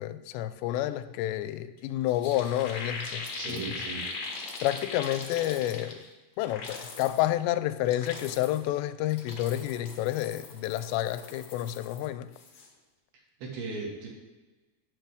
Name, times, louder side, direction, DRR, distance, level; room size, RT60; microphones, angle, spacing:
voice 1, 0.0-3.6 4.6-6.0 6.4-12.3, left 13 dB, 85° left, 2.8 m, -29 dB
sound 1, 1.8-1.9 2.1-6.1 6.4-7.2 7.7-8.7 9.1-12.1 12.3-12.7, left 4 dB, 60° left, 1.7 m, -40 dB
voice 2, 3.3-4.0 13.1-14.1, right 4 dB, 65° right, 3.6 m, -38 dB
18.0 x 7.0 x 3.5 m
omnidirectional pair, 5.0 m